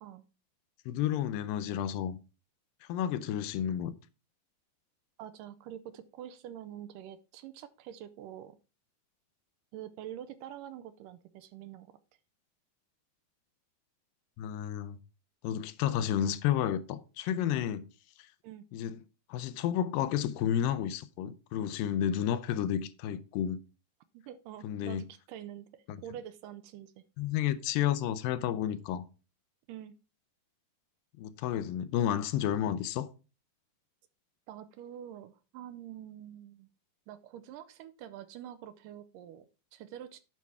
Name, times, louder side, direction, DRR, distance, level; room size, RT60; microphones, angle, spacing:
voice 1, 0.9-2.2 2.9-3.9 14.4-15.0 15.4-17.9 18.7-19.0 19.3-23.6 24.6-25.0 25.9-26.0 27.2-29.1 31.2-33.1, left 10 dB, 85° left, 2.4 m, -31 dB
voice 2, 5.2-8.6 9.7-12.0 18.4-18.7 24.1-27.0 29.7-29.9 34.5-36.7 37.1-40.2, right 11 dB, 80° right, 2.1 m, -46 dB
9.3 x 5.6 x 4.6 m
omnidirectional pair, 4.0 m